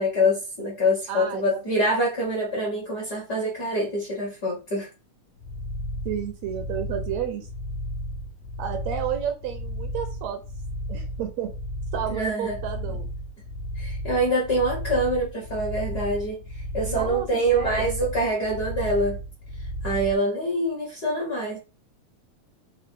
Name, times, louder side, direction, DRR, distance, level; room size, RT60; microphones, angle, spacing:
voice 1, 0.0-4.9 12.1-12.6 13.7-19.2 19.8-21.6, equal, 50° left, -3 dB, 1.2 m, -25 dB
voice 2, 1.1-1.6 6.1-7.5 8.6-10.4 10.9-11.5 11.9-13.1 16.8-17.9, right 9 dB, 75° right, 6 dB, 1.7 m, -31 dB
sound 1, 5.4-20.2, equal, 85° left, 2.0 m, -34 dB
4.7 x 2.1 x 4.5 m, 0.31 s
omnidirectional pair, 3.3 m